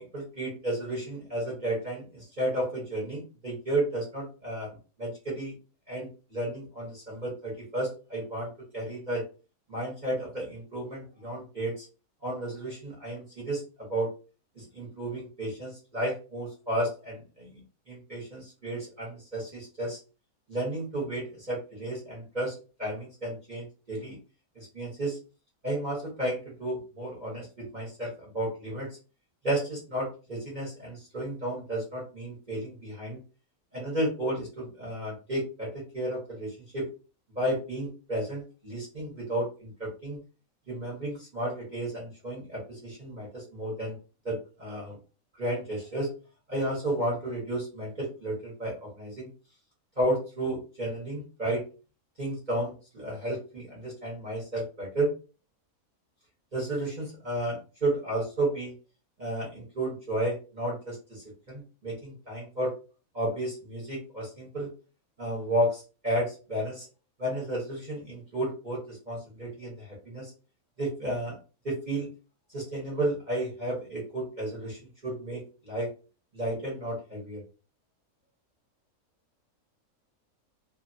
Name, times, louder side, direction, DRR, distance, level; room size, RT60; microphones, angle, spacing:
voice 1, 0.0-5.5 5.9-9.2 9.7-11.9 12.2-14.1 14.5-17.6 17.9-20.0 20.5-24.2 24.5-25.2 25.6-28.9 29.4-33.2 33.7-36.9 37.3-40.2 40.7-44.0 44.2-45.0 45.4-46.1 46.5-49.3 50.0-51.6 52.2-55.1 56.5-58.7 59.2-62.7 63.1-64.7 65.2-66.8 67.2-70.3 70.8-71.4 71.6-72.1 72.5-75.9 76.3-77.4, right 1 dB, 35° right, -5 dB, 1.0 m, -33 dB
2.6 x 2.6 x 2.6 m, 0.34 s
omnidirectional pair, 1.6 m